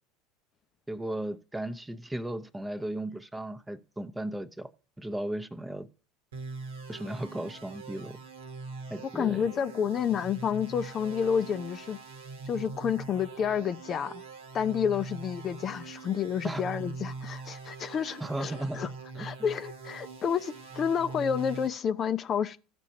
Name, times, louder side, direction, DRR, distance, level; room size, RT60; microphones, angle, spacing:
voice 1, 0.9-4.7 5.0-5.9 6.9-8.2 8.9-9.5 16.4-16.8 18.2-18.8 19.1-19.3, right 1 dB, 10° right, 0.8 m, -35 dB
sound 1, 6.3-21.7, right 4 dB, 75° right, 1.4 m, -42 dB
voice 2, 9.1-12.0 12.5-14.2 14.5-18.9 19.2-22.6, left 7 dB, 35° left, 0.5 m, -30 dB
15.5 x 6.1 x 2.8 m
hypercardioid pair, 75°, 0 cm